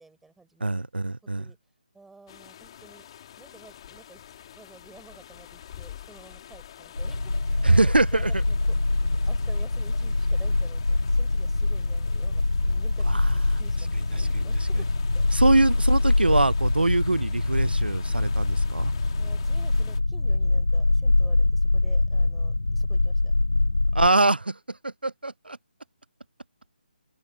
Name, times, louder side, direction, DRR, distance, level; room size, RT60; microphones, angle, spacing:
voice 1, 0.0-1.6 1.9-3.0 3.4-4.2 4.6-8.8 9.0-14.9 15.1-15.3 19.2-23.3, right 3 dB, 5° right, 5.9 m, -52 dB
voice 2, 0.6-1.4 7.6-8.3 13.1-13.3 14.1-14.4 15.3-18.9 23.9-24.6 24.8-25.6, right 2 dB, 85° right, 0.5 m, -23 dB
sound 1, 2.3-20.0, left 10 dB, 35° left, 4.0 m, -45 dB
sound 2, 7.0-24.1, left 2 dB, 85° left, 0.5 m, -24 dB
open air
figure-of-eight pair, 145°, 5 cm